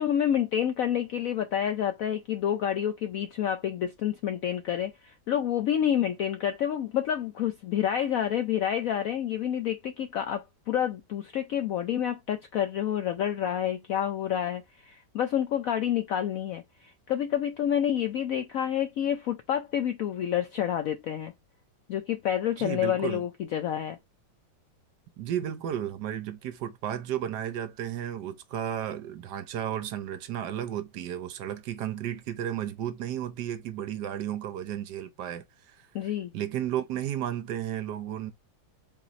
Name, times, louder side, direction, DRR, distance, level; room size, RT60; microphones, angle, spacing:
voice 1, 0.0-21.3 21.9-24.0 35.9-36.3, left 10 dB, 75° left, 0.8 m, -28 dB
voice 2, 22.6-23.2 25.2-35.9 36.3-38.3, right 10 dB, 70° right, 1.2 m, -33 dB
4.1 x 3.0 x 4.0 m
omnidirectional pair, 2.0 m